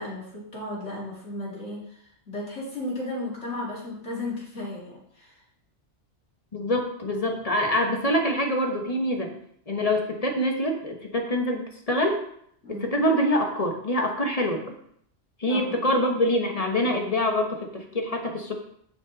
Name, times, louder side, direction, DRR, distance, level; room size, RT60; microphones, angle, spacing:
voice 1, 0.0-5.4 12.6-13.0 15.5-15.9, left 2 dB, 75° left, -5 dB, 3.0 m, -35 dB
voice 2, 6.5-9.3 9.7-12.2 12.8-14.6 15.4-18.5, left 1 dB, 30° left, 3 dB, 1.2 m, -25 dB
9.6 x 5.3 x 4.0 m, 0.68 s
omnidirectional pair, 1.2 m